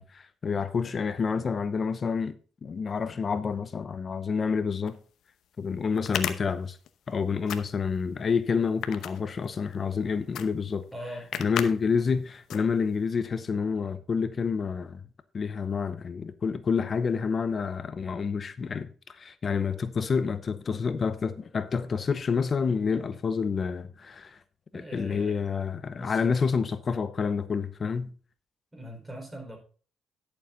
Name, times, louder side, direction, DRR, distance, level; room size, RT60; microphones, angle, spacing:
voice 1, 0.0-5.0 5.6-6.8 7.1-10.9 11.4-15.0 15.3-24.4 24.7-28.1, left 5 dB, 40° left, 0.7 m, -28 dB
sound 1, 4.9-5.0 5.9-7.1 7.4-8.0 8.6-9.8 10.3-10.5 10.8-10.9 11.3-11.7 12.1-12.2 12.5-13.0, left 10 dB, 75° left, 0.8 m, -33 dB
voice 2, 10.9-11.5 24.7-25.4 25.9-26.4 28.7-29.6, equal, 15° right, 4.9 m, -42 dB
11.0 x 6.9 x 3.9 m
cardioid pair, 90°, 0 cm